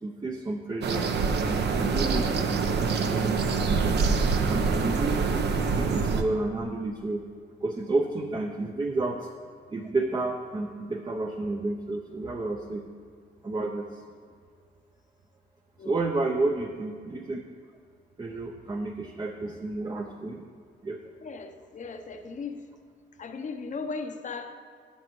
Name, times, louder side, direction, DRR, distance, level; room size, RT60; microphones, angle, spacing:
voice 1, 0.0-1.1 1.5-2.6 3.0-4.1 4.5-5.5 5.8-7.3 7.6-9.3 9.7-12.8 13.4-14.0 15.8-17.4 18.2-20.4 20.8-21.0, right 2 dB, 20° right, 2 dB, 0.6 m, -31 dB
sound 1, 0.8-6.2, right 4 dB, 60° right, 0.8 m, -25 dB
voice 2, 21.2-22.6 23.2-24.6, left 4 dB, 40° left, 6 dB, 0.8 m, -37 dB
12.5 x 7.0 x 3.1 m, 2.1 s
cardioid pair, 90°, 20 cm